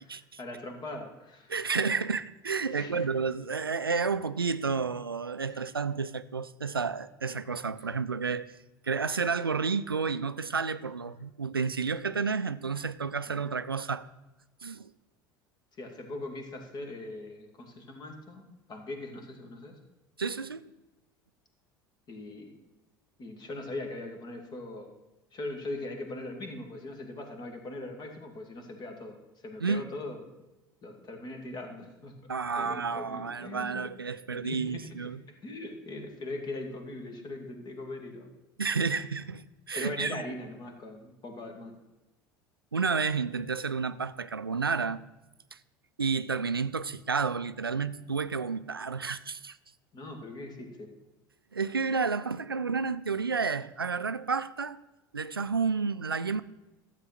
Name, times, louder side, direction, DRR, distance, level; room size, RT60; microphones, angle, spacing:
voice 1, 0.4-1.5 2.7-3.1 3.8-4.0 5.5-5.7 13.3-13.5 15.7-18.4 18.7-19.8 22.1-22.5 23.2-24.9 25.3-30.2 30.8-32.2 32.6-33.9 34.3-35.1 35.4-38.3 39.8-41.7 49.9-50.9, left 2 dB, 35° left, 2.3 m, -40 dB
voice 2, 1.5-8.5 8.8-14.1 14.6-14.9 20.2-20.6 29.6-29.8 32.3-35.2 38.6-40.2 42.7-45.0 45.5-45.6 46.0-49.6 51.5-54.8 55.1-56.4, right 5 dB, 90° right, 0.4 m, -31 dB
13.0 x 7.3 x 5.9 m
figure-of-eight pair, 70°, 12 cm